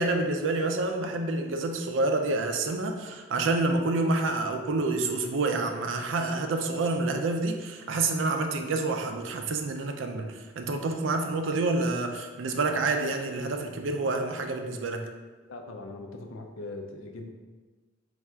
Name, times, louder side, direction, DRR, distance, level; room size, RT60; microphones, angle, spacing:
voice 1, 0.0-15.1, right 3 dB, 70° right, 5 dB, 0.4 m, -28 dB
voice 2, 15.5-17.3, left 2 dB, 80° left, 4 dB, 0.5 m, -40 dB
3.4 x 2.4 x 4.2 m, 1.3 s
head